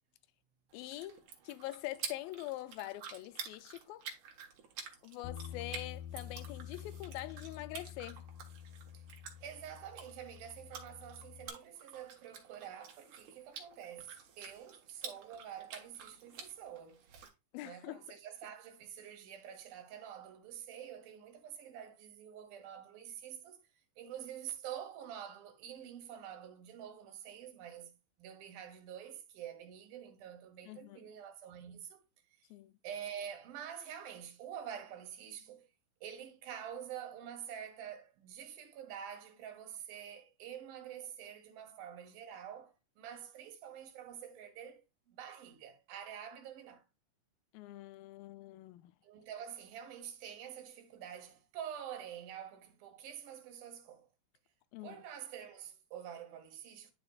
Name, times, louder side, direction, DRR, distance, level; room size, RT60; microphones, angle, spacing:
voice 1, 0.7-4.1 5.0-8.2 17.5-18.0 30.7-31.1 32.5-32.7 47.5-49.0 54.7-55.0, left 16 dB, 90° left, 2.4 m, -44 dB
sound 1, 0.7-17.3, right 7 dB, 65° right, 2.5 m, -50 dB
Bass guitar, 5.2-11.5, left 9 dB, 75° left, 2.7 m, -48 dB
voice 2, 9.4-17.1 17.6-23.6 24.0-32.0 32.4-32.5 32.8-35.7 36.0-46.8 49.0-54.1 54.8-56.9, right 9 dB, 85° right, 3.1 m, -47 dB
10.5 x 5.0 x 2.4 m
omnidirectional pair, 4.1 m